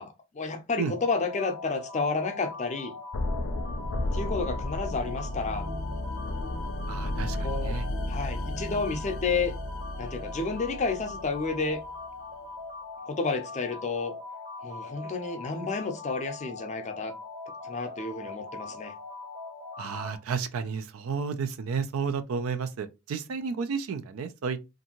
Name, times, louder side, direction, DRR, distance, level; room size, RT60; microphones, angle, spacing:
voice 1, 0.0-2.9 4.1-5.7 7.4-7.8 8.1-9.5 10.0-11.8 13.1-14.1 14.6-17.1 17.6-18.9, left 4 dB, 35° left, 0.5 m, -31 dB
sound 1, 0.9-20.2, left 3 dB, 40° right, 0.7 m, -41 dB
sound 2, 3.1-12.0, left 1 dB, 90° left, 0.5 m, -33 dB
voice 2, 6.9-7.8 19.8-24.6, right 5 dB, 85° right, 0.4 m, -32 dB
2.6 x 2.5 x 2.8 m
head